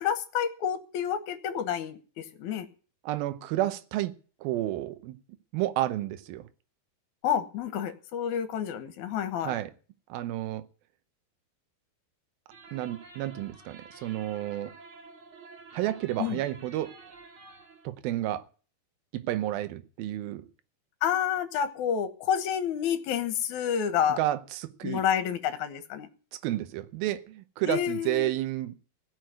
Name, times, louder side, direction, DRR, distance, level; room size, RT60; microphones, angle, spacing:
voice 1, 0.0-2.7 7.2-9.6 16.2-16.4 21.0-24.2 24.8-26.1 27.6-28.3, left 9 dB, 60° left, 2.3 m, -29 dB
voice 2, 3.0-4.1 4.4-5.2 5.5-6.5 9.4-9.7 10.1-10.7 12.7-14.8 15.7-16.9 17.8-18.4 19.1-20.5 24.2-25.0 26.4-28.7, right 14 dB, 80° right, 2.6 m, -31 dB
sound 1, 12.5-17.9, right 4 dB, 40° right, 2.6 m, -50 dB
16.5 x 6.2 x 9.2 m
omnidirectional pair, 4.4 m